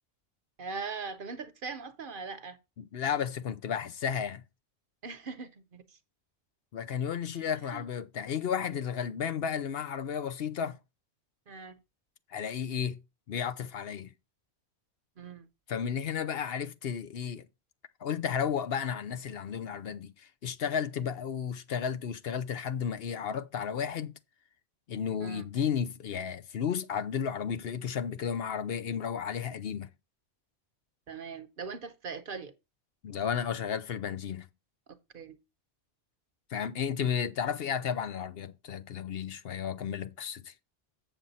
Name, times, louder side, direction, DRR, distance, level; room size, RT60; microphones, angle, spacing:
voice 1, 0.6-2.6 5.0-5.8 7.7-7.8 11.5-11.8 15.2-15.5 25.2-25.4 31.1-32.5 35.1-35.4, right 5 dB, 55° right, 0.9 m, -40 dB
voice 2, 2.8-4.4 6.7-10.8 12.3-13.0 13.3-14.1 15.7-17.5 18.0-24.2 24.9-29.9 33.0-34.5 36.5-40.5, left 7 dB, 65° left, 0.9 m, -33 dB
7.4 x 7.2 x 4.1 m
omnidirectional pair, 1.1 m